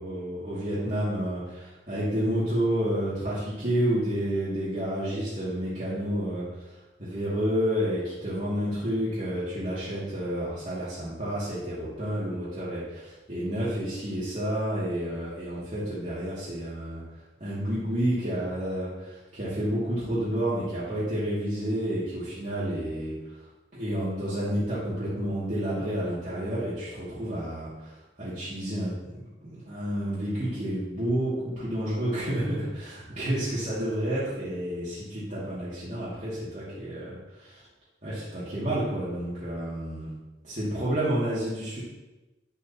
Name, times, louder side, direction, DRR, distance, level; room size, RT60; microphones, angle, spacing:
voice 1, 0.0-17.0 17.4-23.5 23.7-37.6 38.0-40.1 40.4-41.8, equal, 40° right, -11 dB, 2.4 m, -30 dB
11.0 x 7.1 x 3.0 m, 1.1 s
head